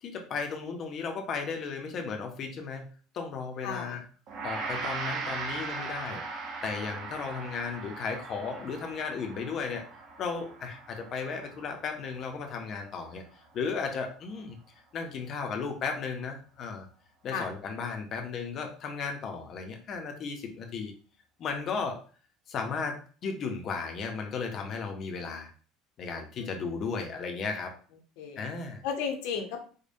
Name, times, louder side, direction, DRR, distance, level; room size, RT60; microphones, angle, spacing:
voice 1, 0.0-2.9 3.1-4.0 4.4-9.8 10.2-13.2 13.5-14.6 14.9-16.9 17.2-20.9 21.4-22.0 22.5-25.5 26.0-27.7 28.4-28.8, left 5 dB, 30° left, 3 dB, 0.5 m, -35 dB
voice 2, 3.6-4.0 17.3-17.5 26.4-26.6 28.2-28.4 28.8-29.6, left 6 dB, 65° left, 4 dB, 0.7 m, -34 dB
Gong, 4.3-13.6, right 4 dB, 35° right, 0.6 m, -39 dB
4.9 x 2.1 x 2.6 m, 0.40 s
cardioid pair, 180°, 0 cm